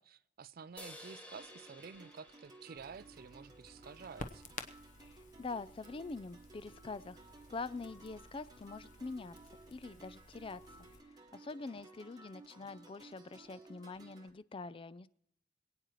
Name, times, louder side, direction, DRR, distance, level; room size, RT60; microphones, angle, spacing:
voice 1, 0.0-4.6, right 5 dB, 50° right, 17 dB, 0.4 m, -51 dB
sound 1, 0.8-4.2, left 1 dB, 10° left, 1.2 m, -55 dB
sound 2, 1.3-14.3, right 2 dB, 20° right, 1.1 m, -58 dB
Crackle, 2.8-11.0, left 2 dB, 45° left, 0.9 m, -53 dB
voice 2, 5.0-7.2 7.5-9.4 9.7-15.1, left 3 dB, 30° left, 17 dB, 0.4 m, -45 dB
26.5 x 9.0 x 3.1 m, 0.73 s
head